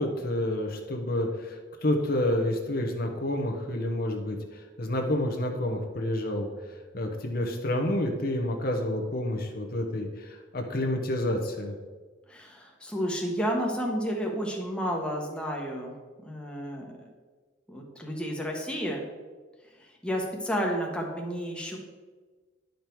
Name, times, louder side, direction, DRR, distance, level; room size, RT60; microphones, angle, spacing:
voice 1, 0.0-11.7, left 1 dB, 50° left, 3 dB, 0.9 m, -29 dB
voice 2, 12.3-16.0 16.2-17.0 17.7-19.1 19.8-21.8, equal, 5° left, -1 dB, 1.1 m, -31 dB
10.5 x 5.3 x 4.5 m, 1.4 s
head